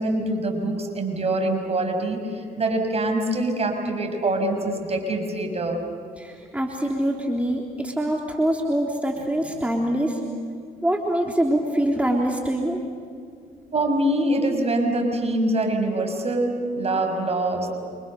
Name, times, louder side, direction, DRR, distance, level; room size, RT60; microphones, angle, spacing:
voice 1, 0.0-5.8 13.7-17.7, right 1 dB, 40° right, 3 dB, 6.4 m, -24 dB
voice 2, 6.2-10.2 10.8-12.8, right 1 dB, 10° right, 0 dB, 3.5 m, -24 dB
28.5 x 26.5 x 6.8 m, 2.2 s
supercardioid pair, 55°, 17 cm